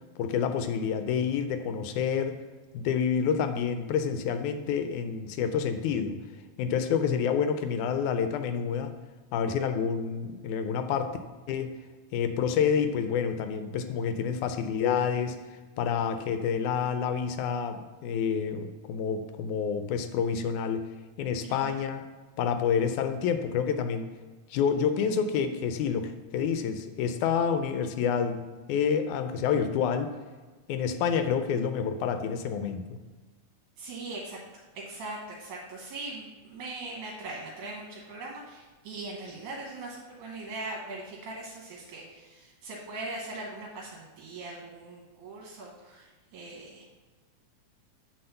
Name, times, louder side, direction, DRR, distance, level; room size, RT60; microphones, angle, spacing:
voice 1, 0.2-2.4 2.7-6.2 6.6-8.9 9.3-11.1 11.5-11.7 12.1-15.4 15.8-20.8 21.2-22.0 22.4-24.1 24.5-28.4 28.7-30.1 30.7-32.9, left 7 dB, 80° left, 8 dB, 2.0 m, -28 dB
voice 2, 33.8-34.4 34.9-46.1 46.3-46.8, right 2 dB, 75° right, -2 dB, 2.5 m, -40 dB
8.6 x 4.2 x 6.6 m, 1.3 s
omnidirectional pair, 3.6 m